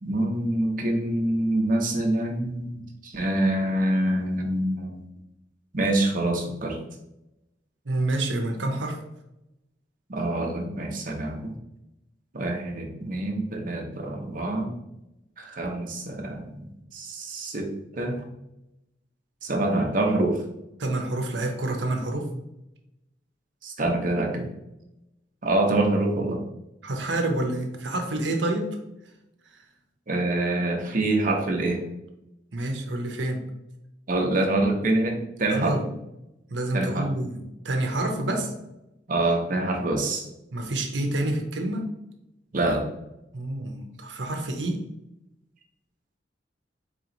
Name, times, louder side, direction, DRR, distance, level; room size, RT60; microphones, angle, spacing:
voice 1, 0.0-5.1 5.7-6.8 10.1-11.5 12.3-14.7 15.4-16.7 16.9-18.2 19.4-20.4 23.6-24.5 25.4-26.4 30.1-31.8 34.1-35.8 36.7-37.1 38.3-38.4 39.1-40.2 42.5-42.9, right 2 dB, 50° right, 1 dB, 0.8 m, -26 dB
voice 2, 7.9-9.0 20.8-22.3 26.8-28.7 32.5-33.4 35.5-35.9 36.5-38.5 40.5-41.9 43.3-44.8, right 1 dB, 85° right, 4 dB, 0.8 m, -28 dB
4.2 x 3.0 x 3.9 m, 0.89 s
head